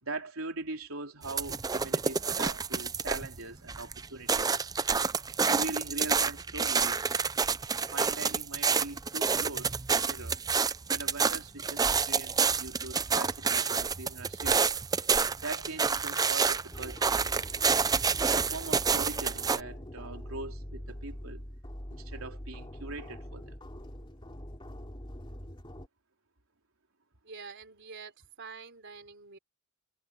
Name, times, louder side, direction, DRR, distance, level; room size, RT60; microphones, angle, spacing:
voice 1, 0.0-4.6 5.4-7.1 7.9-10.4 10.9-14.6 15.4-17.2 18.3-21.4 21.9-23.6, right 3 dB, 80° right, 3.7 m, -41 dB
sound 1, 1.2-3.4 3.7-19.6, right 5 dB, 20° right, 0.4 m, -28 dB
sound 2, 16.7-25.9, equal, 25° left, 3.0 m, -44 dB
voice 2, 27.2-29.4, right 5 dB, 60° right, 4.1 m, -46 dB
head